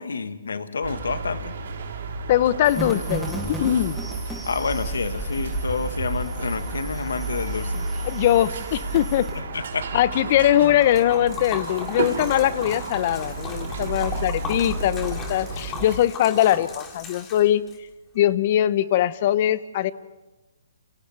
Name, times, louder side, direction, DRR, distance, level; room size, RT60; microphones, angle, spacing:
voice 1, 0.0-1.5 4.5-7.9 9.3-10.0, left 5 dB, 80° left, 10 dB, 1.5 m, -29 dB
sound 1, 0.8-16.0, right 3 dB, 65° right, 3.8 m, -32 dB
voice 2, 2.3-3.3 3.6-4.0 8.0-9.3 9.9-17.6 18.1-19.9, left 12 dB, 40° left, 17 dB, 0.8 m, -21 dB
sound 2, 2.6-9.4, right 1 dB, 5° left, 3.1 m, -35 dB
Liquid, 10.6-17.8, left 4 dB, 20° left, 3.4 m, -37 dB
29.0 x 26.5 x 3.5 m, 1.1 s
hypercardioid pair, 145°, 0 cm